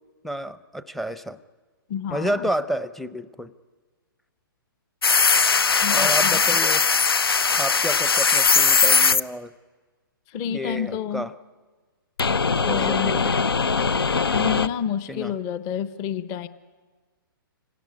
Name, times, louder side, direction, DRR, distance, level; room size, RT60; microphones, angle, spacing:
voice 1, 0.2-1.4 2.1-3.5 5.9-6.8 7.5-9.5 10.4-11.3 12.6-13.4 15.1-15.3, equal, ahead, 15 dB, 0.7 m, -30 dB
voice 2, 1.9-2.5 5.8-6.4 10.3-11.3 12.7-13.3 14.3-16.5, left 8 dB, 30° left, 13 dB, 1.0 m, -29 dB
sound 1, 5.0-9.2 12.2-14.7, left 5 dB, 85° left, 0.7 m, -20 dB
26.0 x 17.5 x 9.9 m, 1.4 s
hypercardioid pair, 130°, 12 cm